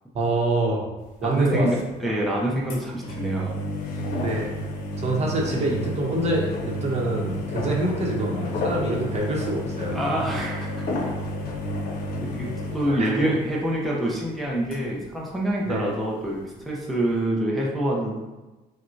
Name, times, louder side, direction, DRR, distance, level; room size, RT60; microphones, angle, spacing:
voice 1, 0.1-0.8 1.2-1.7 4.2-4.5 5.0-10.1 12.8-13.3 15.6-15.9, right 2 dB, 40° right, -1 dB, 0.9 m, -26 dB
sound 1, 1.1-1.3 1.9-2.1 2.7-13.9 14.2-14.3 14.5-15.2 15.6-15.7 15.9-16.0 16.6-16.7, left 1 dB, 60° left, 0.9 m, -31 dB
voice 2, 1.2-3.6 9.9-10.7 12.2-18.4, right 1 dB, ahead, -4 dB, 0.7 m, -26 dB
6.0 x 2.2 x 2.7 m, 1.1 s
cardioid pair, 110°, 17 cm